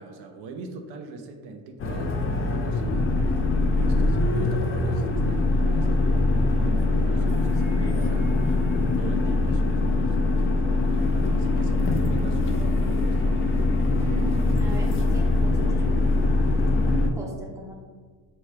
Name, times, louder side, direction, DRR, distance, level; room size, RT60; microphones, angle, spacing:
voice 1, 0.0-8.3 9.0-13.7, right 3 dB, 65° right, 4 dB, 0.6 m, -41 dB
sound 1, 1.8-17.1, left 2 dB, 30° left, 0.4 m, -22 dB
sound 2, 11.0-16.8, equal, 50° left, 0.9 m, -39 dB
voice 2, 13.9-15.8 16.8-17.8, right 3 dB, 5° right, -1 dB, 0.6 m, -37 dB
4.6 x 2.9 x 3.3 m, 1.5 s
cardioid pair, 115°, 43 cm